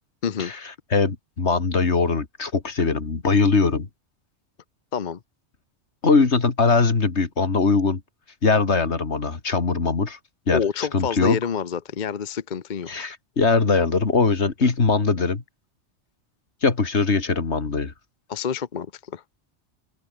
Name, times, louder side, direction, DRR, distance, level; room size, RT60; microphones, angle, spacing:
voice 1, 0.9-3.9 6.0-8.0 8.4-10.2 10.5-10.6 10.9-11.4 12.9-15.4 16.6-17.9, left 4 dB, 75° left, 2.5 m, -21 dB
voice 2, 10.5-12.9 18.3-19.2, left 7 dB, 45° left, 0.9 m, -27 dB
open air
omnidirectional pair, 1.2 m